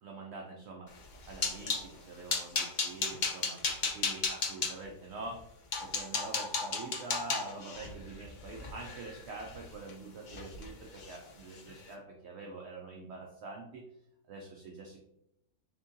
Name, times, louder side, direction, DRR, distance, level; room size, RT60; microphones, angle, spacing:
voice 1, 0.0-5.4 5.8-13.8 14.3-15.0, right 3 dB, 70° right, 0 dB, 0.6 m, -45 dB
sound 1, 1.0-1.9 2.3-4.7 5.3-5.4 5.7-9.9 10.3-10.7 10.9-11.2 11.6-11.7, left 4 dB, 70° left, 0.4 m, -34 dB
3.6 x 3.6 x 2.6 m, 0.79 s
omnidirectional pair, 1.7 m